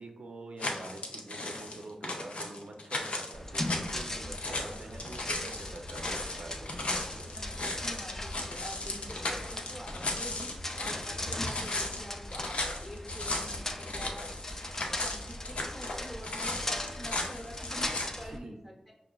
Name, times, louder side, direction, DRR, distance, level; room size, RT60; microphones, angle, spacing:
voice 1, 0.0-7.4 18.1-18.5, right 2 dB, 75° right, 3 dB, 0.4 m, -46 dB
sound 1, 0.6-18.1, left 2 dB, 85° left, 0.5 m, -36 dB
sound 2, 3.3-18.4, left 1 dB, 25° left, 0.3 m, -39 dB
voice 2, 7.3-14.3 14.6-18.9, equal, ahead, -1 dB, 0.8 m, -46 dB
5.5 x 2.4 x 2.2 m, 0.91 s
wide cardioid pair, 105°, 2 cm